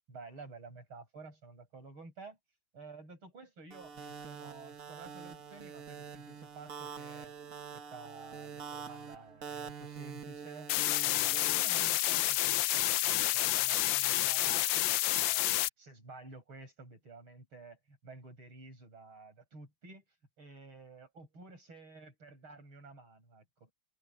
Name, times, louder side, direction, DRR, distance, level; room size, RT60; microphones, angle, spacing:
voice 1, 0.1-2.4 2.7-7.3 7.7-10.7 11.0-15.5 15.8-20.0 20.4-23.7, right 3 dB, 75° right, 9.0 m, -52 dB
sound 1, 3.7-11.9, right 6 dB, 45° right, 1.5 m, -46 dB
sound 2, 10.7-15.7, left 15 dB, 75° left, 1.2 m, -29 dB
omnidirectional pair, 2.3 m